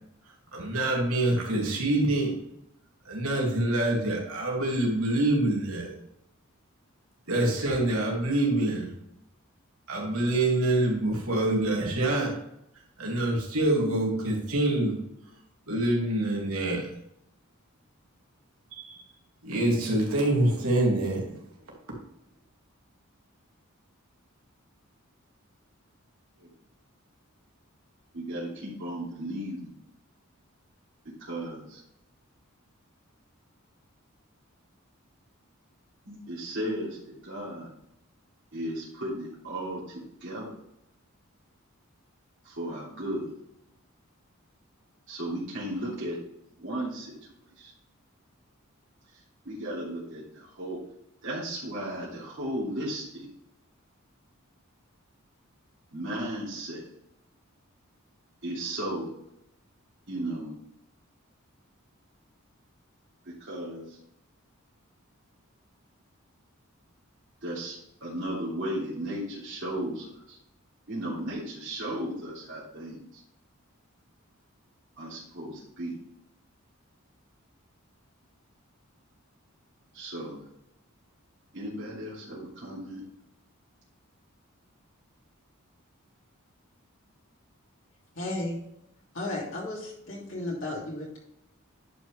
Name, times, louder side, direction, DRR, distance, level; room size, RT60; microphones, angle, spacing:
voice 1, 0.5-2.4 3.0-5.9 7.3-8.9 9.9-12.4 13.0-15.0 15.7-16.9 18.7-19.0 19.4-21.4, right 1 dB, 90° right, -2 dB, 2.9 m, -26 dB
voice 2, 28.1-29.7 31.3-31.8 36.1-37.7 38.5-40.5 42.4-43.3 45.1-46.2 46.6-47.1 47.6-47.7 49.4-50.8 51.2-53.3 55.9-56.9 58.4-59.1 60.1-60.5 63.4-64.0 67.4-70.4 70.9-73.2 75.0-75.9 79.9-80.4 81.5-83.0, right 1 dB, 60° right, -8 dB, 3.1 m, -35 dB
voice 3, 88.1-88.6 89.1-91.2, left 1 dB, 65° left, -4 dB, 2.9 m, -34 dB
10.5 x 6.1 x 3.5 m, 0.78 s
head